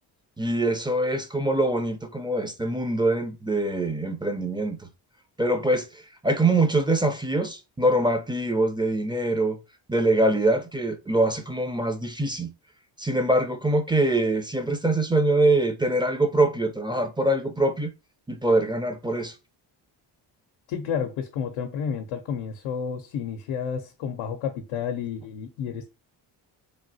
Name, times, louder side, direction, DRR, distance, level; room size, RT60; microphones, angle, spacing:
voice 1, 0.4-4.9 5.4-9.6 9.9-12.5 13.0-17.9 18.3-19.3, right 2 dB, 10° right, 0.4 m, -24 dB
voice 2, 20.7-25.9, left 7 dB, 85° left, 0.6 m, -31 dB
3.3 x 2.3 x 2.6 m
supercardioid pair, 70°, 47 cm